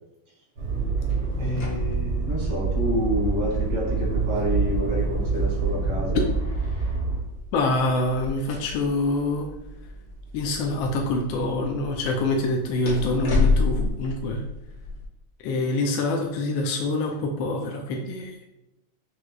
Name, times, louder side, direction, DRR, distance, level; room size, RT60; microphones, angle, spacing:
Motor vehicle (road), 0.6-7.2, right 3 dB, 60° right, 1.1 m, -26 dB
sound 1, 1.1-15.0, left 3 dB, 55° left, 1.3 m, -32 dB
voice 1, 1.4-6.2, equal, 85° right, -5 dB, 2.6 m, -29 dB
voice 2, 7.5-9.5 10.3-14.4 15.4-18.3, left 2 dB, 75° left, 1 dB, 1.2 m, -25 dB
6.4 x 2.9 x 2.3 m, 0.92 s
omnidirectional pair, 2.4 m